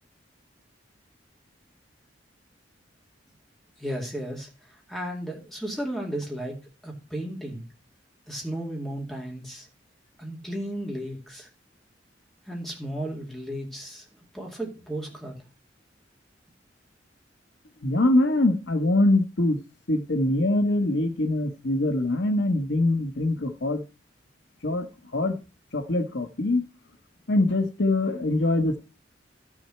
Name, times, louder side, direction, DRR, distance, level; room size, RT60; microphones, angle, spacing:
voice 1, 3.8-4.5 4.9-6.6 6.8-7.6 8.3-9.7 10.2-11.5 12.5-14.0 14.3-15.3, right 1 dB, ahead, 2.3 m, -34 dB
voice 2, 17.8-19.6 19.9-23.8 24.6-24.9 25.1-25.3 25.7-26.7 27.3-28.8, left 2 dB, 70° left, 1.1 m, -23 dB
12.5 x 6.2 x 4.4 m
head